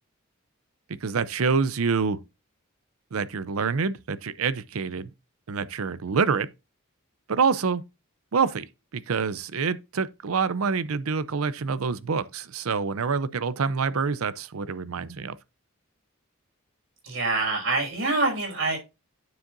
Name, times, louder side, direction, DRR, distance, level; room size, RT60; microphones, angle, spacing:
voice 1, 0.9-2.2 3.1-5.1 5.5-6.5 7.3-7.8 8.3-8.7 8.9-15.4, right 5 dB, 85° right, 0.6 m, -26 dB
voice 2, 17.0-18.8, right 3 dB, 70° right, 5.5 m, -25 dB
9.4 x 7.3 x 2.5 m
head